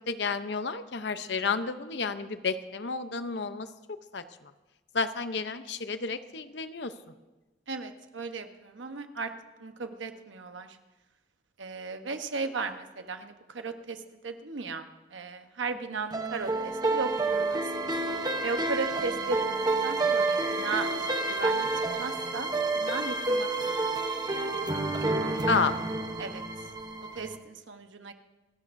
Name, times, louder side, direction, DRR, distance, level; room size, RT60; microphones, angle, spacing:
voice 1, 0.1-3.7 4.1-4.5 4.9-6.9 15.9-16.0 25.5-25.8, left 4 dB, 70° left, 11 dB, 0.7 m, -31 dB
voice 2, 7.7-9.3 9.6-10.8 11.6-18.0 18.4-19.4 19.8-20.9 21.3-24.0 25.3-25.5 26.2-26.4 27.1-28.1, right 4 dB, 85° right, 7 dB, 1.0 m, -36 dB
sound 1, 16.1-27.4, right 3 dB, 20° right, 0.8 m, -29 dB
27.5 x 13.0 x 2.6 m, 1.1 s
head